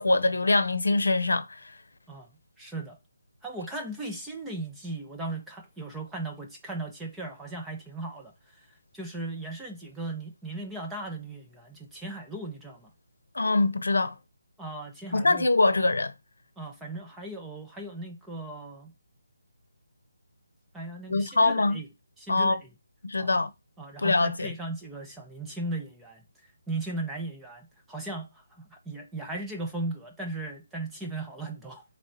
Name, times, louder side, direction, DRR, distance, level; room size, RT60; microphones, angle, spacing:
voice 1, 0.0-1.6 13.3-14.1 15.1-16.1 21.1-21.8 22.3-22.6 23.0-23.5 24.0-24.5, left 2 dB, 80° left, 0.7 m, -23 dB
voice 2, 2.1-3.0 3.4-8.7 8.9-12.9 14.6-15.5 16.6-18.9 20.7-21.9 22.2-22.7 23.2-23.3 23.8-26.2 26.7-31.8, right 2 dB, 5° right, 0.7 m, -37 dB
3.3 x 3.1 x 3.9 m
figure-of-eight pair, 160°, 0 cm